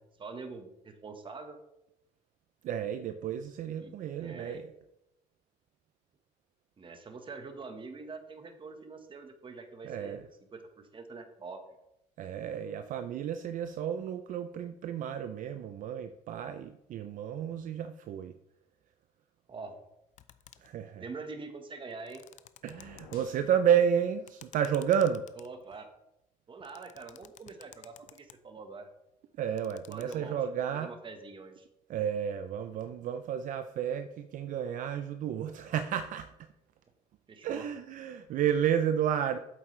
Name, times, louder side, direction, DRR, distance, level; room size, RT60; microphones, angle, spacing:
voice 1, 0.0-1.6 3.8-3.9 4.2-4.6 6.8-10.2 10.5-11.6 19.5-19.8 21.0-22.2 25.4-25.9 26.5-28.9 29.9-30.4 30.7-31.7 37.3-37.7, right 4 dB, 35° right, 6 dB, 1.3 m, -45 dB
voice 2, 2.6-4.7 9.8-10.3 12.2-18.4 20.6-21.0 22.6-25.3 29.4-30.9 31.9-36.5 37.4-39.4, right 8 dB, 60° right, 9 dB, 0.5 m, -31 dB
sound 1, 20.1-20.8 21.9-23.2 24.3-25.9 26.6-28.3 29.4-30.2, left 11 dB, 55° left, 0.5 m, -54 dB
sound 2, 22.6-23.5, left 5 dB, 85° left, 1.4 m, -54 dB
8.2 x 7.5 x 3.2 m, 0.86 s
cardioid pair, 95°, 15 cm